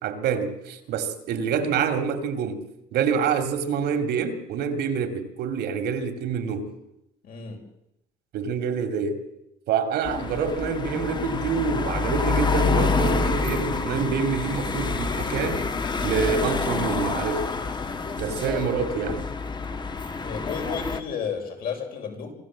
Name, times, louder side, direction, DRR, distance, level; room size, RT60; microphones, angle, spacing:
voice 1, 0.0-2.6 2.9-6.7 8.3-9.2 9.7-15.6 16.0-17.5 18.2-19.3, right 6 dB, 75° right, 7 dB, 2.7 m, -26 dB
voice 2, 7.2-7.6 20.2-22.3, left 6 dB, 60° left, 2 dB, 5.8 m, -32 dB
sound 1, 10.0-21.0, left 4 dB, 25° left, 1.3 m, -27 dB
25.5 x 14.0 x 7.5 m, 0.88 s
cardioid pair, 110°, 17 cm